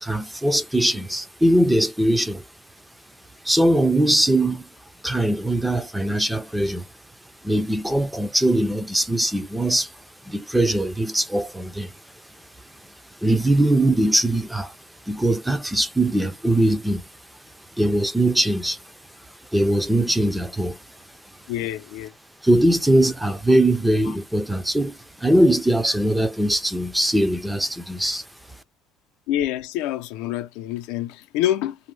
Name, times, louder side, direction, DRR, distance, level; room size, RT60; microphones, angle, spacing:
voice 1, 0.0-2.4 3.4-4.7 5.0-6.9 7.4-11.9 13.2-14.8 15.1-17.0 17.8-18.8 19.5-20.8 22.4-28.2, right 1 dB, 5° right, 0.4 m, -21 dB
voice 2, 21.5-22.1 29.3-31.8, left 12 dB, 90° left, 0.5 m, -26 dB
2.6 x 2.1 x 3.1 m
cardioid pair, 155°, 0 cm